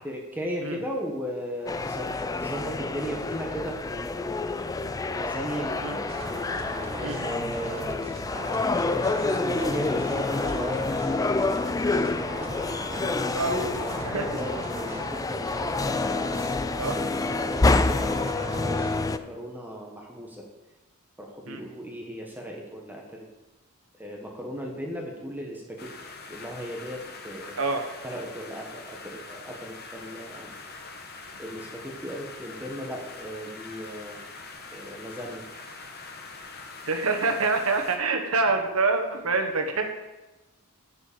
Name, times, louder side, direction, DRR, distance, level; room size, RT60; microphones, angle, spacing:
voice 1, 0.0-4.5 5.1-6.1 6.9-8.1 8.8-12.8 13.1-15.7 16.1-18.3 18.6-20.4 21.2-23.3 24.0-25.9 26.3-27.6 28.0-30.5 31.4-34.2 34.7-35.4, equal, 10° right, -1 dB, 1.2 m, -37 dB
sound 1, 1.7-19.2, left 3 dB, 15° left, 0.3 m, -28 dB
sound 2, 6.1-19.0, right 2 dB, 30° right, 1.5 m, -39 dB
voice 2, 7.0-7.4 13.3-14.3 16.7-17.0 21.5-21.6 27.6-27.8 36.8-39.9, right 3 dB, 80° right, 4 dB, 1.3 m, -26 dB
sound 3, 25.8-38.0, left 3 dB, 50° left, 1.1 m, -43 dB
7.6 x 6.8 x 7.2 m, 1.1 s
head